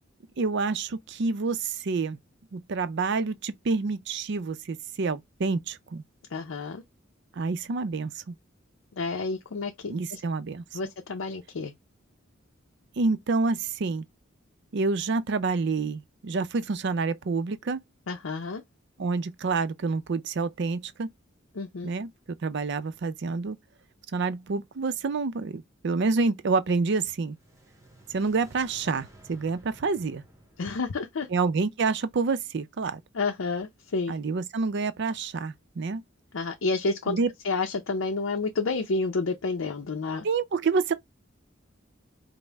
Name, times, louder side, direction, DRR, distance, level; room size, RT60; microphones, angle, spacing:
voice 1, 0.4-2.2 2.5-6.0 7.4-8.3 9.9-10.6 13.0-14.0 14.7-17.8 19.0-21.1 21.8-22.1 22.4-23.6 24.1-27.4 28.1-30.2 31.3-33.0 34.1-36.0 37.1-37.3 40.2-40.9, right 4 dB, 60° right, 0.5 m, -28 dB
voice 2, 6.3-6.8 9.0-10.2 10.7-11.7 18.1-18.6 21.5-21.9 30.6-31.3 33.1-34.2 36.3-37.2 37.4-40.3, left 3 dB, 85° left, 0.6 m, -30 dB
sound 1, 27.2-32.3, right 1 dB, 15° right, 0.9 m, -55 dB
5.3 x 2.1 x 3.4 m
head